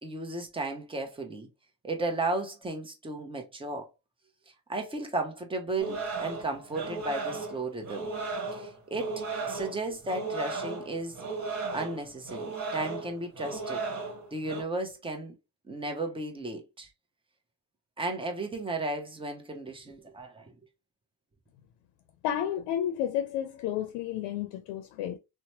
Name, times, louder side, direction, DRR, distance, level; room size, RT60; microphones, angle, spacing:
voice 1, 0.0-1.5 1.8-3.9 4.7-8.1 8.5-11.2 11.7-13.8 14.3-15.3 15.7-16.9 18.0-20.5, right 2 dB, 15° right, 0.7 m, -34 dB
sound 1, 5.8-14.6, right 4 dB, 45° right, 1.3 m, -36 dB
voice 2, 22.2-25.2, left 10 dB, 80° left, 0.6 m, -31 dB
2.9 x 2.2 x 2.8 m
cardioid pair, 105°, 41 cm